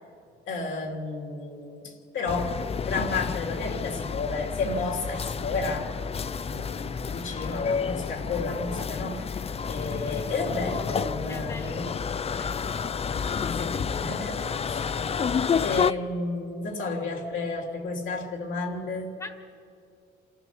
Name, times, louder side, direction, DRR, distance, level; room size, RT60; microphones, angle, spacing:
voice 1, 0.5-5.9 6.4-9.4 9.7-11.9 13.5-14.9 15.6-19.1, left 3 dB, 75° left, 0 dB, 3.1 m, -32 dB
sound 1, 2.3-15.9, left 6 dB, 30° left, 0.4 m, -30 dB
voice 2, 11.3-12.7 19.2-19.6, left 2 dB, 15° left, 6 dB, 1.5 m, -43 dB
28.0 x 14.5 x 7.0 m, 2.6 s
cardioid pair, 90°, 20 cm